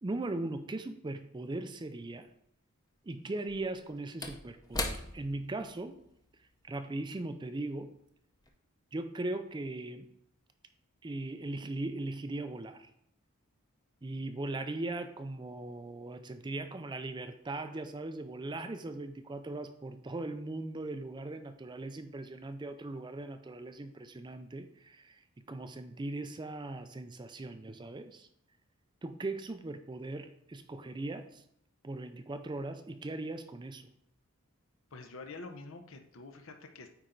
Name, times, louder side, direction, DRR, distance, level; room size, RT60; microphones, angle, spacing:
voice 1, 0.0-2.3 3.1-6.0 6.7-7.9 8.9-10.1 11.0-12.9 14.0-25.2 25.5-28.3 29.0-31.4 31.8-33.9, right 2 dB, 20° right, 8 dB, 0.4 m, -39 dB
Slam / Wood, 1.8-1.9 3.3-8.0 8.3-8.5, left 2 dB, 15° left, 0.7 m, -42 dB
voice 2, 34.9-36.9, left 3 dB, 65° left, 6 dB, 0.8 m, -47 dB
9.3 x 4.3 x 3.8 m, 0.73 s
head